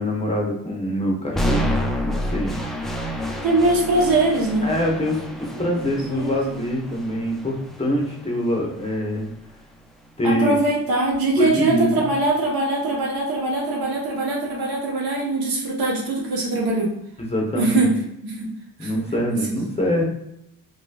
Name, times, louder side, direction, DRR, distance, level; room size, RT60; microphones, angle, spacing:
voice 1, 0.0-1.7 2.0-2.6 4.6-9.3 10.2-10.5 11.3-11.9 17.2-17.8 18.8-20.0, equal, 20° left, -2 dB, 0.9 m, -24 dB
sound 1, 1.3-9.4, equal, ahead, 0.3 m, -29 dB
voice 2, 3.4-4.7 5.5-6.6 10.2-16.9 17.6-18.5 18.8-19.0 19.3-19.4, right 2 dB, 90° right, -1 dB, 1.0 m, -22 dB
3.2 x 2.9 x 2.3 m, 0.77 s
cardioid pair, 100°, 34 cm